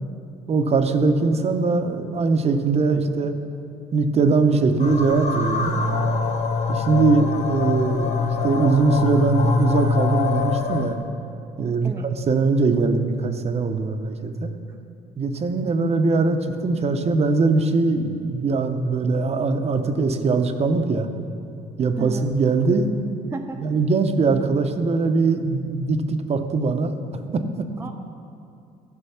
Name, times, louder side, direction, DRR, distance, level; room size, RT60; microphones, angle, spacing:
voice 1, 0.5-3.3 3.9-5.9 6.7-11.0 11.6-14.5 15.2-21.1 21.8-22.9 23.6-27.7, right 3 dB, 40° right, 7 dB, 0.7 m, -21 dB
sound 1, 4.8-11.0, left 4 dB, 45° left, 0.9 m, -24 dB
voice 2, 15.6-16.0 22.0-22.3 23.3-23.6 27.8-27.9, right 3 dB, 15° right, 3 dB, 0.4 m, -33 dB
13.5 x 5.3 x 5.8 m, 2.5 s
cardioid pair, 110°, 17 cm